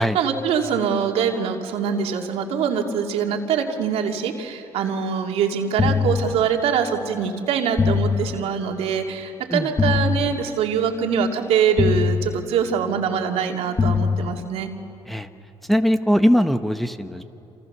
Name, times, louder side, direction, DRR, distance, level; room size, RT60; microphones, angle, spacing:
voice 1, 0.0-14.7, right 7 dB, 75° right, 3 dB, 2.7 m, -23 dB
sound 1, 5.8-7.0 7.8-9.0 9.8-11.0 11.8-13.0 13.8-15.0, left 5 dB, 25° left, 1.1 m, -24 dB
voice 2, 15.7-17.2, equal, ahead, 7 dB, 1.2 m, -20 dB
28.0 x 27.5 x 6.8 m, 2.8 s
supercardioid pair, 75°, 10 cm